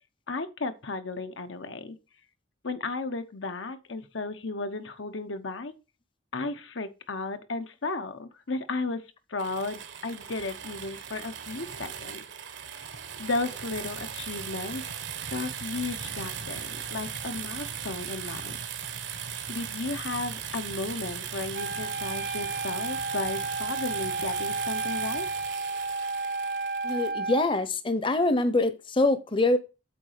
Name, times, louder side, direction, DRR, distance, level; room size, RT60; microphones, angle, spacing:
voice 1, 0.3-2.0 2.6-5.7 6.3-9.0 9.3-12.2 13.2-15.0 15.3-18.6 19.1-25.3, left 3 dB, 85° left, 1.0 m, -34 dB
sound 1, 9.4-27.1, right 8 dB, 75° right, 1.2 m, -38 dB
Wind instrument woodwind instrument, 21.5-27.5, right 3 dB, 50° right, 0.6 m, -32 dB
voice 2, 26.8-29.6, left 2 dB, 25° left, 0.7 m, -24 dB
8.3 x 4.0 x 6.6 m
head